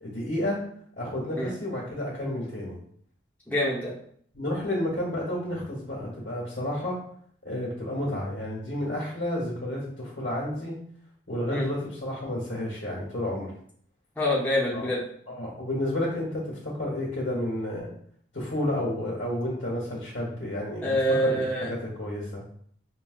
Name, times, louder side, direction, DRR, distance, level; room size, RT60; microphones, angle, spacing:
voice 1, 0.0-0.6 1.0-2.8 4.3-7.0 7.4-10.8 11.3-13.5 14.7-14.9 15.3-17.9 18.3-20.8 21.2-22.4, left 1 dB, 80° left, -5 dB, 1.2 m, -31 dB
voice 2, 3.5-3.9 11.5-11.6 14.2-15.0 20.8-21.7, equal, 10° left, -7 dB, 0.7 m, -26 dB
4.4 x 2.3 x 2.4 m, 0.62 s
head